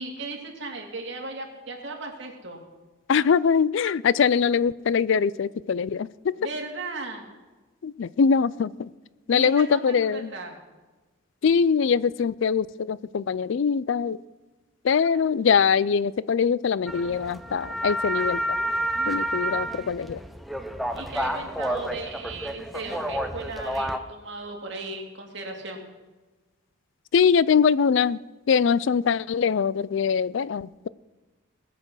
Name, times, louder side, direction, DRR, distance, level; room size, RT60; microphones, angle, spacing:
voice 1, 0.0-2.6 6.4-7.3 9.3-10.5 15.1-15.2 20.9-25.8, right 3 dB, 55° right, 1 dB, 2.6 m, -36 dB
voice 2, 3.1-6.3 7.8-8.9 9.3-10.3 11.4-14.2 14.8-18.4 19.1-20.2 27.1-28.2 28.5-30.9, left 6 dB, 60° left, 20 dB, 0.4 m, -22 dB
sound 1, 16.9-24.0, right 1 dB, ahead, 0.6 m, -30 dB
20.0 x 7.7 x 6.3 m, 1.2 s
head